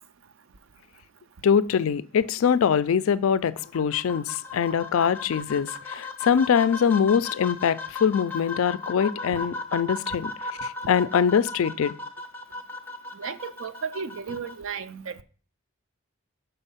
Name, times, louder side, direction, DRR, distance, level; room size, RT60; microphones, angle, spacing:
voice 1, 1.4-11.9, left 7 dB, 75° left, 0.4 m, -23 dB
sound 1, 3.6-14.5, left 3 dB, 10° left, 0.5 m, -36 dB
voice 2, 13.1-15.2, right 6 dB, 65° right, 0.5 m, -34 dB
5.6 x 4.4 x 5.6 m
head